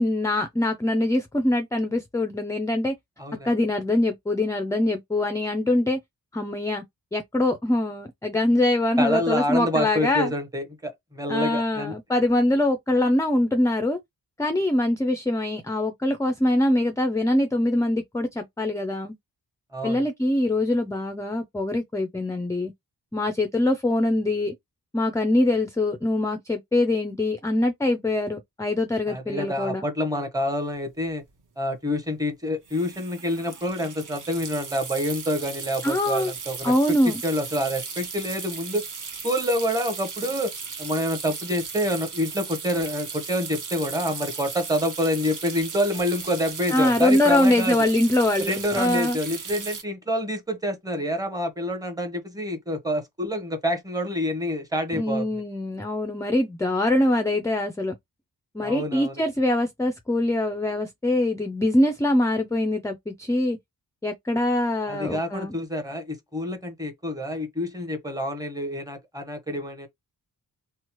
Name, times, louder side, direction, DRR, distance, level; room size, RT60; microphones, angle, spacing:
voice 1, 0.0-2.9 3.4-6.0 6.3-6.8 7.1-10.3 11.3-14.0 14.4-19.1 19.8-22.7 23.1-24.5 24.9-29.8 35.8-36.3 36.6-37.2 46.7-49.2 54.9-57.9 58.5-63.6 64.0-65.6, left 1 dB, 10° left, 0.3 m, -23 dB
voice 2, 3.2-3.5 9.0-11.9 19.7-20.0 29.1-31.2 31.6-38.8 39.2-40.5 40.8-47.8 48.4-55.4 58.6-59.2 64.9-69.9, equal, 10° right, 0.8 m, -27 dB
sound 1, 30.7-30.8 31.0-31.3 32.7-49.8, right 5 dB, 50° right, 0.7 m, -36 dB
2.9 x 2.0 x 2.9 m
wide cardioid pair, 100°, 39 cm